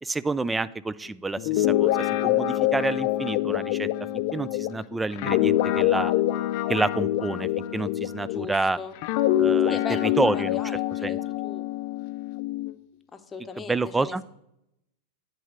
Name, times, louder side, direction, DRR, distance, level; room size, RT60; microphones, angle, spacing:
voice 1, 0.0-1.9 2.2-3.9 4.3-6.1 6.7-8.8 9.4-10.6 11.0-11.2 13.6-14.2, right 3 dB, 10° right, 19 dB, 0.3 m, -28 dB
Guitar, 1.4-8.6 9.0-12.7, left 13 dB, 55° left, 0.5 m, -25 dB
voice 2, 8.2-9.0 9.7-11.2 11.4-11.7 13.1-14.2, left 5 dB, 20° left, 6 dB, 0.9 m, -38 dB
10.0 x 3.5 x 6.3 m, 0.83 s
hypercardioid pair, 105°, 0 cm